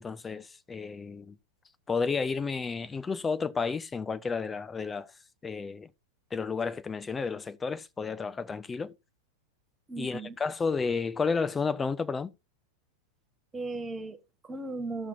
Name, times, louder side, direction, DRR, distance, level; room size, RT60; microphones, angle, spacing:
voice 1, 0.0-1.3 1.9-5.1 5.4-5.9 6.3-8.9 10.0-12.3, left 5 dB, 15° left, 0.6 m, -31 dB
voice 2, 9.9-10.3 13.5-15.1, right 3 dB, 15° right, 1.4 m, -37 dB
16.0 x 5.8 x 2.7 m
figure-of-eight pair, 90°, 0 cm